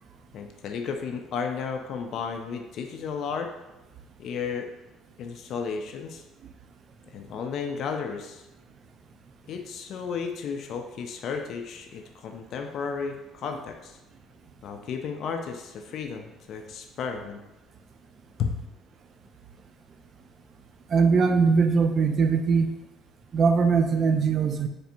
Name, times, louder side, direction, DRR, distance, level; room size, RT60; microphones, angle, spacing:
voice 1, 0.3-3.5 4.2-4.7 5.2-6.2 7.1-8.4 9.5-14.0 14.6-17.4 18.4-18.6, left 6 dB, 60° left, 5 dB, 0.4 m, -33 dB
voice 2, 20.9-22.7 23.3-24.7, right 5 dB, 45° right, 8 dB, 0.3 m, -21 dB
4.2 x 3.3 x 2.6 m, 0.99 s
cardioid pair, 110°, 0 cm